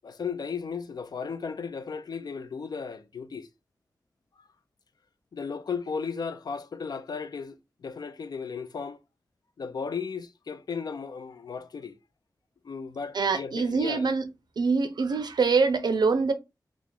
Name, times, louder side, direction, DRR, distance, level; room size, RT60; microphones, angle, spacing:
voice 1, 0.0-3.5 5.3-9.0 9.6-12.0 12.6-14.1, left 5 dB, 70° left, 0.4 m, -35 dB
voice 2, 13.1-14.3 14.6-16.3, right 4 dB, 85° right, 0.5 m, -24 dB
2.9 x 2.4 x 3.7 m
wide cardioid pair, 90°, 7 cm